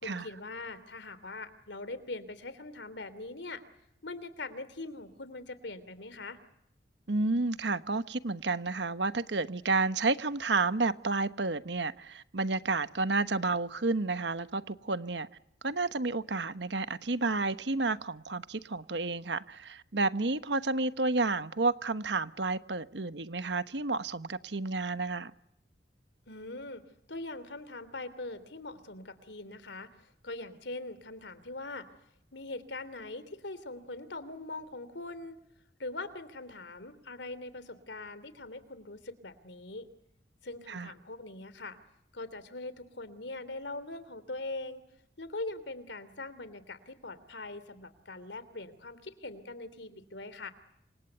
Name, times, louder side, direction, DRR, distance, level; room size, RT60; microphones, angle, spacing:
voice 1, 0.0-3.6 4.0-6.4 26.3-26.8 27.1-31.9 32.3-35.4 35.8-39.9 40.4-41.8 42.1-44.8 45.2-50.5, left 2 dB, 80° left, 3.1 m, -42 dB
voice 2, 7.1-15.3 15.6-25.3 40.7-40.9, right 3 dB, 75° right, 1.2 m, -31 dB
28.5 x 26.0 x 8.1 m
head